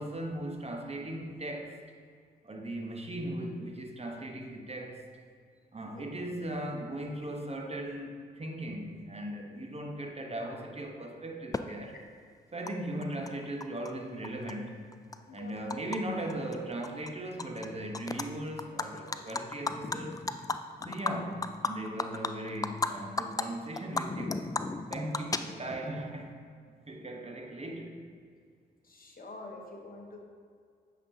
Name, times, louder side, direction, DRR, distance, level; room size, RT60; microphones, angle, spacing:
voice 1, 0.0-1.8 2.4-5.0 5.7-12.0 12.5-14.8 15.3-20.3 20.8-24.5 24.9-26.3 26.9-28.0, right 1 dB, 30° right, 2 dB, 1.1 m, -38 dB
Animal, 11.5-11.6 12.7-12.8 13.0-13.9 14.2-16.0 16.3-16.5 16.8-17.7 17.9-18.3 18.6-22.9 23.2-23.4 23.8-25.9, left 3 dB, 15° left, 0.3 m, -34 dB
voice 2, 28.8-30.2, left 2 dB, 45° left, 1 dB, 1.0 m, -46 dB
8.5 x 5.1 x 2.8 m, 2.1 s
hypercardioid pair, 40°, 21 cm